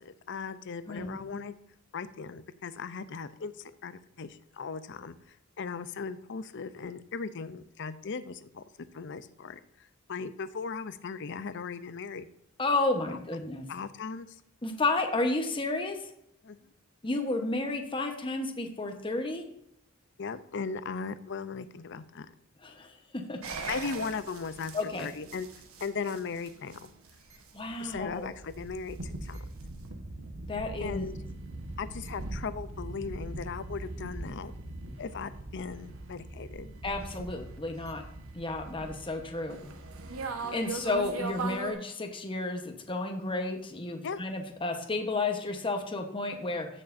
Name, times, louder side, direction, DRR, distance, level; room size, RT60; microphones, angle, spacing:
voice 1, 0.0-1.5 1.9-8.6 8.9-12.3 13.1-13.2 13.7-14.4 16.4-16.6 20.2-22.3 23.7-25.5 25.8-26.9 27.8-29.4 30.8-31.1 31.8-34.5 35.0-36.7 40.4-40.8 44.0-44.2, left 5 dB, 60° left, 14 dB, 0.6 m, -38 dB
voice 2, 12.6-13.7 14.6-16.0 17.0-19.5 22.6-23.4 24.7-25.1 27.5-28.3 30.5-31.0 36.8-38.0 38.3-39.7 40.5-46.7, left 2 dB, 25° left, 4 dB, 1.1 m, -32 dB
sound 1, 23.4-41.7, right 3 dB, 80° right, 1.2 m, -41 dB
15.0 x 6.5 x 2.6 m, 0.75 s
head